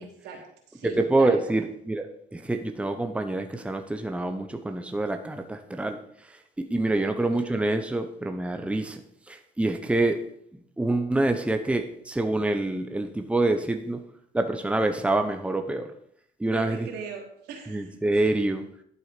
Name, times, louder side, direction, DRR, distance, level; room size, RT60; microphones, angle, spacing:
voice 1, 0.0-1.4 6.6-7.1 16.4-18.0, right 6 dB, 85° right, 1 dB, 3.3 m, -40 dB
voice 2, 0.8-2.1 2.3-6.0 6.6-9.0 9.3-10.2 10.8-14.0 14.3-15.9 16.4-16.9 17.7-18.6, right 2 dB, 5° right, 6 dB, 1.1 m, -26 dB
11.5 x 7.8 x 5.2 m, 0.69 s
cardioid pair, 110°, 17 cm